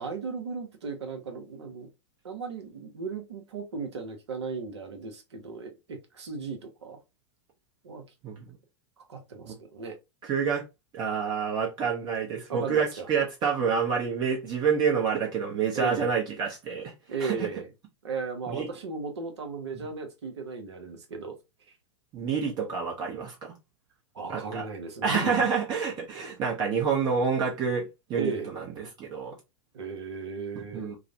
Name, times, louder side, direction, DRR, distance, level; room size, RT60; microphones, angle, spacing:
voice 1, 0.0-1.9 2.2-7.0 7.8-8.0 9.0-10.0 12.5-13.1 15.7-16.1 17.1-17.7 18.0-21.4 24.1-25.5 28.1-28.5 29.7-30.9, right 4 dB, 65° right, 0.7 m, -36 dB
voice 2, 10.2-10.6 10.9-16.9 17.2-17.5 18.5-18.7 22.1-23.5 24.3-24.6 25.0-29.3 30.6-31.0, right 6 dB, 30° right, 0.6 m, -28 dB
2.4 x 2.0 x 2.6 m
figure-of-eight pair, 95°, 15 cm